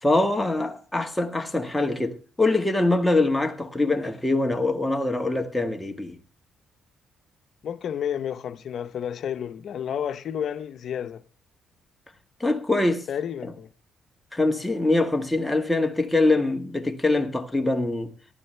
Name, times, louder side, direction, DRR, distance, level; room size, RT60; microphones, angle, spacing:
voice 1, 0.0-6.1 12.4-13.1 14.3-18.1, left 2 dB, 10° left, 1.6 m, -23 dB
voice 2, 7.6-11.2 13.1-13.7, left 9 dB, 60° left, 0.9 m, -31 dB
18.0 x 12.0 x 3.3 m
cardioid pair, 90°, 0 cm